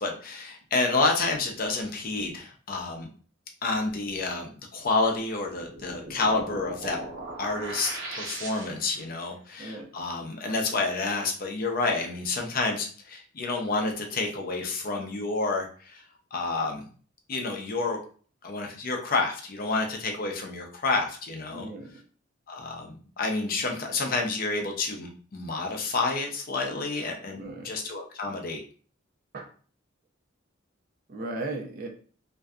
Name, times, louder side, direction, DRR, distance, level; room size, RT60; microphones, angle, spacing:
voice 1, 0.0-3.1 3.6-7.0 7.4-16.0 16.3-16.8 17.3-18.0 18.4-21.7 22.5-28.6, left 3 dB, 45° left, 2 dB, 0.5 m, -29 dB
sound 1, 5.5-9.0, right 2 dB, 80° right, 0.8 m, -39 dB
voice 2, 9.6-9.9 21.5-21.9 27.4-27.7 29.3-29.5 31.1-31.9, right 2 dB, 45° right, 1 dB, 0.5 m, -36 dB
2.6 x 2.2 x 2.3 m, 0.41 s
head